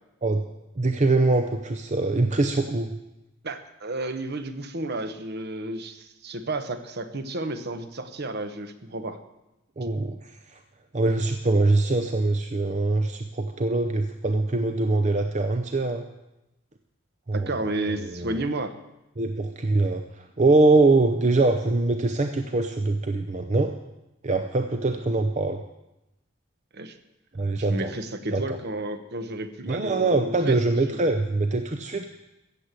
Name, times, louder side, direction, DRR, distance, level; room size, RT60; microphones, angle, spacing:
voice 1, 0.8-2.9 9.8-10.6 10.9-16.0 17.3-17.5 18.0-18.3 19.2-23.7 24.2-25.6 27.3-27.9 28.3-28.6 29.7-32.1, right 2 dB, 35° right, 6 dB, 0.7 m, -23 dB
voice 2, 3.4-9.2 17.3-18.7 26.7-27.0 27.6-31.0, right 2 dB, 50° right, 10 dB, 1.0 m, -32 dB
14.5 x 7.6 x 8.2 m, 0.95 s
head